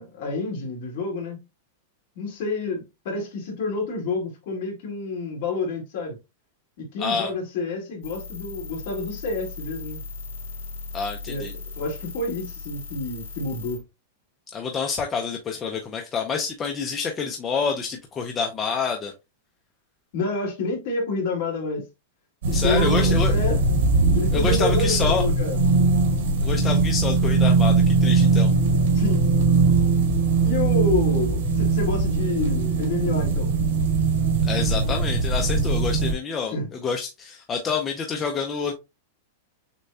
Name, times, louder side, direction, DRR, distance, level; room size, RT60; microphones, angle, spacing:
voice 1, 0.0-1.4 2.2-6.2 6.8-10.0 11.3-11.5 11.8-13.8 20.1-21.8 22.5-23.6 24.1-25.6 28.9-29.3 30.4-33.5 36.5-36.7, left 3 dB, 50° left, 2.0 m, -28 dB
voice 2, 7.0-7.3 10.9-11.5 14.5-19.1 22.5-23.3 24.3-25.2 26.4-28.5 34.4-38.7, left 5 dB, 15° left, 0.5 m, -27 dB
sound 1, 8.0-13.8, left 3 dB, 65° left, 1.8 m, -38 dB
sound 2, 22.4-36.1, right 3 dB, 80° right, 1.8 m, -20 dB
6.6 x 2.2 x 2.6 m
supercardioid pair, 170°, 0 cm